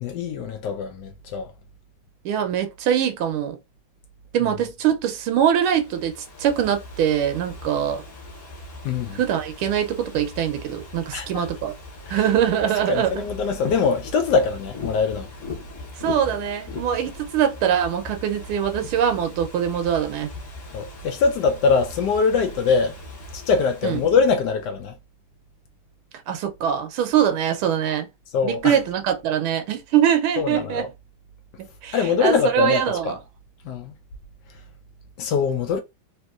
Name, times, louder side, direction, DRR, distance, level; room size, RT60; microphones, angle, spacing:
voice 1, 0.0-1.5 8.8-9.2 11.1-11.4 12.1-12.2 12.9-15.3 20.7-23.0 23.3-24.9 28.3-28.8 30.4-30.9 31.9-33.1 33.6-33.9 35.2-35.8, left 5 dB, 75° left, 1.0 m, -22 dB
voice 2, 2.2-3.6 4.3-8.0 9.1-11.7 12.1-13.2 16.0-20.3 23.8-24.0 26.3-28.1 28.4-30.9 31.6-33.2, right 9 dB, 85° right, 1.5 m, -23 dB
Ocean / Fireworks, 5.4-24.7, left 2 dB, 40° left, 1.1 m, -39 dB
3.5 x 2.8 x 2.3 m
omnidirectional pair, 2.3 m